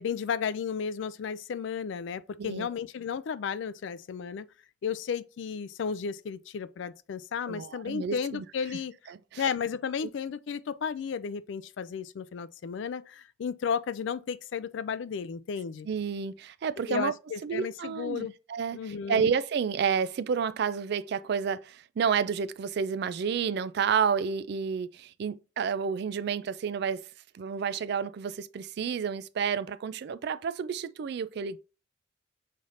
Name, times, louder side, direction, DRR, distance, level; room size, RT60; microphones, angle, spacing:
voice 1, 0.0-4.5 4.8-8.9 9.4-15.9 16.8-18.3 18.7-19.3, left 6 dB, 65° left, 0.3 m, -33 dB
voice 2, 7.5-8.4 9.3-9.4 15.9-17.1 17.4-27.0 27.3-31.6, right 6 dB, 55° right, 0.3 m, -30 dB
5.5 x 3.2 x 2.5 m
head